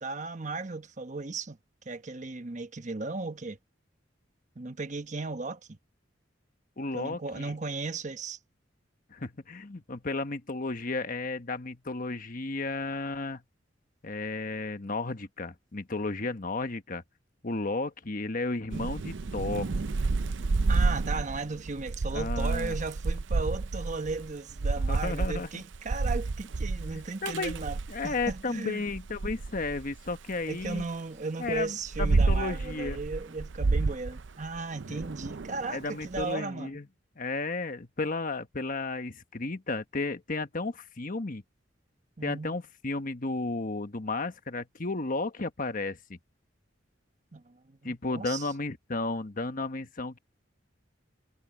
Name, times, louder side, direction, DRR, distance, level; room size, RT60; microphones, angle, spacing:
voice 1, 0.0-1.6 1.8-3.6 4.6-5.8 6.9-8.4 20.7-28.8 30.5-36.7 42.2-42.5 47.3-48.5, right 3 dB, 40° right, 1.1 m, -36 dB
voice 2, 6.8-7.5 9.1-13.4 14.0-17.0 17.4-19.8 22.1-22.8 24.9-25.5 26.9-27.6 27.9-30.9 31.4-33.0 34.9-35.0 35.7-36.8 37.2-41.4 42.2-46.2 47.8-50.2, left 3 dB, 45° left, 1.2 m, -33 dB
Thunder / Rain, 18.7-28.4 28.9-30.8 31.4-36.2, right 3 dB, 70° right, 0.6 m, -30 dB
head